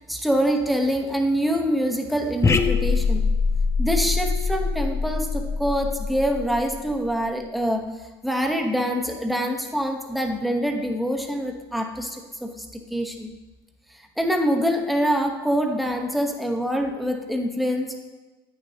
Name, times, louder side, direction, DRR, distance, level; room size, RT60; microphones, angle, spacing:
voice 1, 0.1-3.2 3.8-7.8 8.2-12.6 12.9-13.3 14.2-17.9, equal, ahead, 3 dB, 1.0 m, -25 dB
sound 1, 2.4-7.1, left 4 dB, 20° left, 0.5 m, -24 dB
8.7 x 6.3 x 2.8 m, 1.2 s
hypercardioid pair, 80°, 13 cm